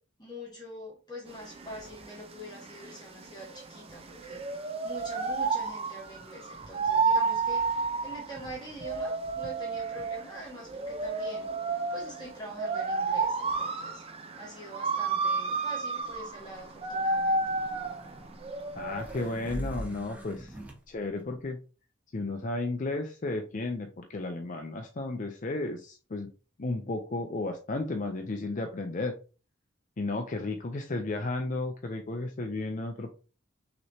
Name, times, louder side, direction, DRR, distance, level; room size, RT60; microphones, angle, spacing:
voice 1, 0.2-14.0 14.4-17.4, equal, 20° left, -4 dB, 1.4 m, -45 dB
sound 1, 1.3-19.3, right 4 dB, 30° right, 0.6 m, -31 dB
sound 2, 16.1-20.8, equal, 10° right, 1.1 m, -42 dB
voice 2, 18.7-20.5 20.9-21.6 22.1-26.3 26.6-29.1 30.0-33.1, left 2 dB, 40° left, 4 dB, 0.5 m, -33 dB
6.2 x 3.0 x 2.7 m, 0.35 s
head